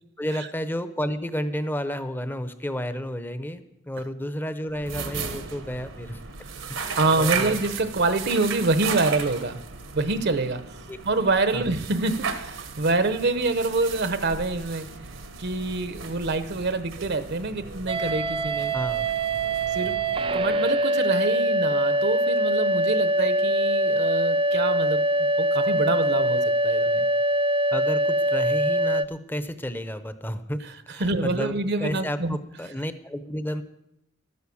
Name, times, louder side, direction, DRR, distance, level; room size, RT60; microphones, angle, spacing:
voice 1, 0.2-6.2 6.7-7.6 10.9-11.0 11.5-11.6 18.7-19.1 27.7-30.7 30.9-31.5 31.8-33.6, equal, 10° left, 11 dB, 0.7 m, -31 dB
sound 1, 4.7-20.8, right 5 dB, 80° right, 1.3 m, -36 dB
voice 2, 6.9-9.6 9.9-10.8 11.0-14.9 15.4-18.7 19.7-20.0 20.3-27.1 31.0-32.4, right 3 dB, 55° right, 11 dB, 0.8 m, -26 dB
sound 2, 17.9-29.1, right 1 dB, 25° right, 0.4 m, -23 dB
12.5 x 9.5 x 7.0 m, 0.85 s
head